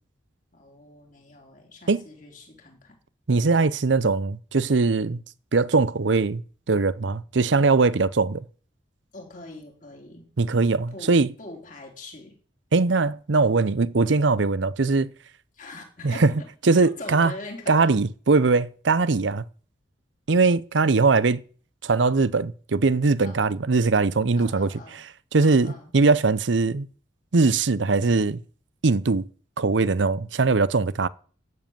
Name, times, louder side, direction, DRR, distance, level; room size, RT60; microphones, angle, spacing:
voice 1, 0.5-3.0 9.1-10.3 10.9-12.4 15.5-16.5 16.8-18.0 23.2-23.6 24.4-25.1 25.4-25.9, left 2 dB, 45° left, 3.9 m, -43 dB
voice 2, 3.3-5.2 5.5-6.4 6.7-8.4 10.4-11.3 12.7-15.1 16.0-16.3 16.7-17.3 17.7-19.4 20.3-21.4 21.8-24.7 25.3-26.9 27.3-28.4 28.8-29.3 29.6-31.1, right 3 dB, 70° right, 0.7 m, -21 dB
12.5 x 7.7 x 9.1 m
head